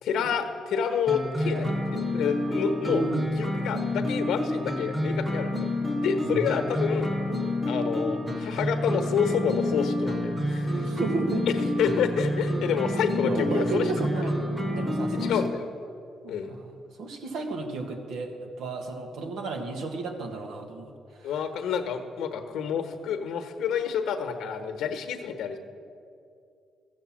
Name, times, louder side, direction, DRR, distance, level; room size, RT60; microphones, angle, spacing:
voice 1, 0.0-3.0 3.4-5.7 6.0-7.1 7.6-10.9 11.5-13.9 15.2-15.7 16.3-16.5 21.2-25.6, left 7 dB, 80° left, 7 dB, 1.1 m, -28 dB
sound 1, 1.1-15.5, left 1 dB, 15° right, 1.3 m, -29 dB
voice 2, 1.4-1.7 2.9-3.3 3.9-4.0 6.2-6.5 10.7-11.5 13.2-14.4 14.7-15.4 16.2-21.4, right 3 dB, 80° right, 3 dB, 1.6 m, -33 dB
13.5 x 7.9 x 7.4 m, 2.5 s
cardioid pair, 90°, 0 cm